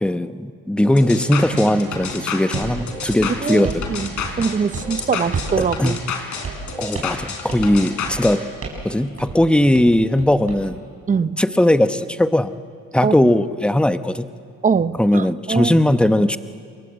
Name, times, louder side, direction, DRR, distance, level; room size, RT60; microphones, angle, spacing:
voice 1, 0.0-3.8 5.6-6.0 6.8-8.5 8.8-10.8 11.4-12.5 12.9-14.3 15.0-16.4, left 1 dB, 5° left, 11 dB, 0.9 m, -18 dB
sound 1, 1.0-8.4, left 6 dB, 55° left, 3.8 m, -30 dB
Strum, 1.5-6.8, right 6 dB, 65° right, 6.7 m, -41 dB
sound 2, 2.5-2.7 3.1-3.9 4.2-4.5 4.7-4.9 5.3-5.6 5.9-6.0 6.4-6.7 6.9-7.2 7.5-7.7 8.0-8.3 8.6-8.9 9.2-9.4 9.7-10.6, right 4 dB, 40° right, 7.1 m, -31 dB
voice 2, 3.2-6.0 11.1-11.4 13.0-13.3 14.6-15.8, right 6 dB, 20° right, 15 dB, 0.7 m, -22 dB
27.5 x 22.5 x 8.1 m, 2.2 s
cardioid pair, 95°, 35 cm